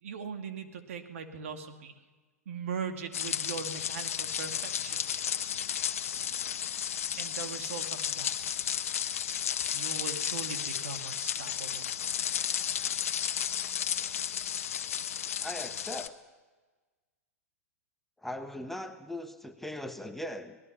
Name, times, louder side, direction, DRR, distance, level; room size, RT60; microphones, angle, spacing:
voice 1, 0.0-2.0 2.5-5.1 7.1-8.6 9.7-11.9, right 6 dB, 60° right, 6 dB, 2.3 m, -40 dB
sound 1, 3.1-16.1, left 9 dB, 60° left, 1.1 m, -33 dB
voice 2, 15.4-16.2 18.2-20.6, left 1 dB, 5° left, 7 dB, 1.2 m, -39 dB
25.0 x 19.0 x 5.8 m, 1.3 s
figure-of-eight pair, 100°, 8 cm